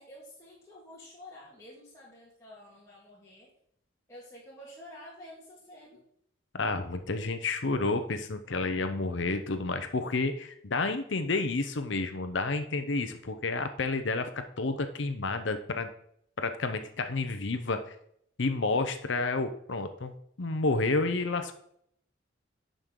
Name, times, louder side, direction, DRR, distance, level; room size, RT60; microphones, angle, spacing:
voice 1, 0.0-3.5 4.1-6.0, left 1 dB, 15° left, -7 dB, 1.9 m, -50 dB
voice 2, 6.5-15.9 16.4-17.9 18.4-20.1 20.4-21.5, left 3 dB, 70° left, 8 dB, 0.8 m, -30 dB
11.0 x 5.2 x 3.9 m, 0.68 s
head